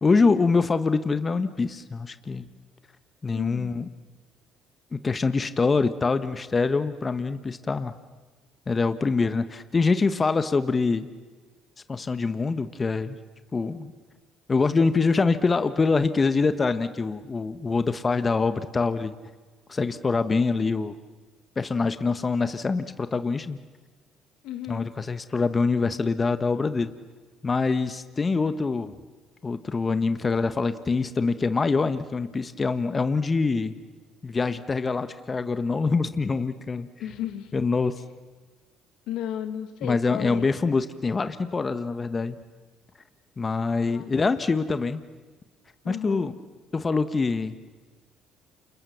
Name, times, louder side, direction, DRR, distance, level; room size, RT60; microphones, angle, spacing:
voice 1, 0.0-2.5 3.2-3.9 4.9-7.9 8.7-11.1 11.9-13.2 13.5-13.9 14.5-19.1 19.7-21.0 21.6-23.6 24.7-26.9 27.4-28.9 29.4-33.7 34.2-36.9 37.5-38.0 39.8-42.4 43.4-45.0 45.9-46.3 46.7-47.6, left 4 dB, 30° left, 11 dB, 1.3 m, -25 dB
voice 2, 3.3-3.7 24.4-24.9 37.0-37.5 39.1-40.4 43.8-44.1 45.8-46.3, left 10 dB, 75° left, 9 dB, 1.9 m, -34 dB
29.5 x 26.5 x 7.1 m, 1.4 s
supercardioid pair, 70°, 0 cm